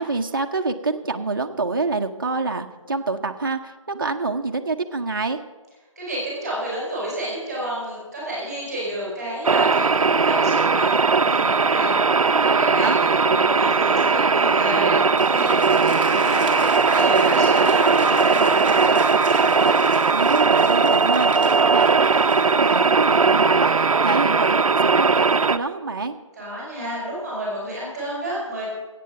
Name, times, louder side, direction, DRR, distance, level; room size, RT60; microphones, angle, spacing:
voice 1, 0.0-5.4 12.8-13.0 20.1-26.2, right 3 dB, 40° right, 4 dB, 0.7 m, -26 dB
voice 2, 6.0-19.0 26.4-28.7, right 1 dB, ahead, -6 dB, 4.1 m, -30 dB
sound 1, 9.4-25.6, right 4 dB, 85° right, 0.6 m, -18 dB
Applause, 15.1-24.0, right 3 dB, 20° right, 1.1 m, -33 dB
14.0 x 8.5 x 5.7 m, 1.2 s
figure-of-eight pair, 175°, 17 cm